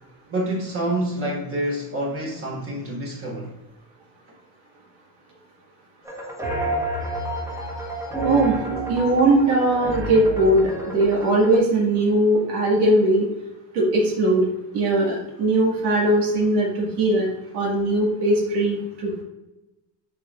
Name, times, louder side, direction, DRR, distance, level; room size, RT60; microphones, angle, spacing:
voice 1, 0.3-3.5, right 1 dB, 30° right, 1.4 m, -27 dB
sound 1, 6.0-11.6, right 1 dB, 5° right, 1.3 m, -29 dB
voice 2, 8.2-8.6 8.9-13.3 13.7-14.5 14.7-17.3 17.5-19.2, right 1 dB, 75° right, 2.0 m, -20 dB
7.8 x 4.9 x 2.5 m
cardioid pair, 130°, 41 cm